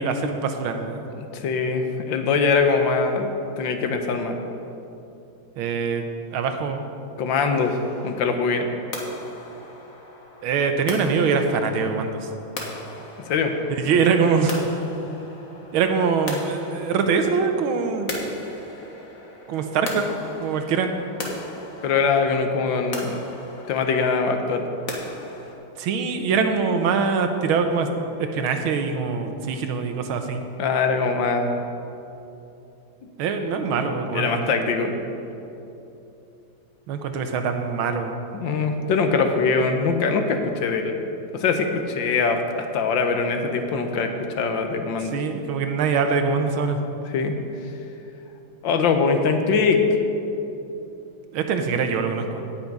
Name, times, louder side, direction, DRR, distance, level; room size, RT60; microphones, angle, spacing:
voice 1, 0.0-1.1 5.6-6.8 10.4-12.3 13.7-14.8 15.7-18.1 19.5-20.0 20.4-20.9 25.8-27.9 28.2-30.5 33.2-34.5 36.9-38.2 45.0-46.8 51.3-52.4, right 5 dB, 85° right, 6 dB, 1.7 m, -23 dB
voice 2, 1.2-3.3 3.6-4.4 7.2-7.7 8.0-8.7 13.3-13.5 21.8-23.2 23.7-24.7 30.6-31.6 33.7-34.9 38.3-40.9 41.3-42.4 42.7-45.1 47.1-47.3 48.6-49.8, left 5 dB, 70° left, 6 dB, 1.5 m, -22 dB
sound 1, 7.6-25.5, left 2 dB, 45° left, 1.7 m, -38 dB
17.0 x 6.0 x 5.3 m, 2.8 s
omnidirectional pair, 2.3 m